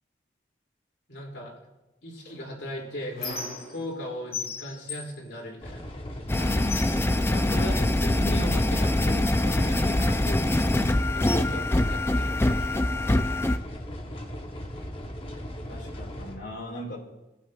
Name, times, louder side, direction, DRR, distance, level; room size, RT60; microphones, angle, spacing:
voice 1, 1.1-1.5 2.0-3.2 3.7-5.8 7.3-10.5 11.1-12.6, equal, 75° left, -2 dB, 2.7 m, -37 dB
Squeak, 2.3-4.0 4.3-6.0 6.4-8.1 8.8-9.0 9.3-10.3, left 4 dB, 55° left, 2.7 m, -39 dB
sound 1, 5.6-16.3, equal, 30° left, 1.0 m, -38 dB
sound 2, 6.3-13.6, left 1 dB, 15° left, 0.3 m, -24 dB
voice 2, 7.5-7.9 15.7-17.0, equal, 90° left, -4 dB, 2.4 m, -39 dB
16.5 x 8.3 x 2.4 m, 1.0 s
head